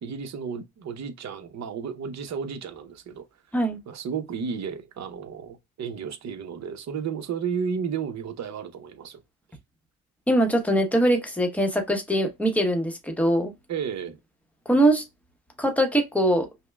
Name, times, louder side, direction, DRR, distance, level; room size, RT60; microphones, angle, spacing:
voice 1, 0.0-3.2 3.9-9.2 13.7-14.2, right 6 dB, 50° right, 0.8 m, -33 dB
voice 2, 10.3-13.5 14.7-15.0 15.6-16.5, right 1 dB, 5° left, 0.9 m, -22 dB
5.4 x 2.1 x 2.3 m
cardioid pair, 100°, 36 cm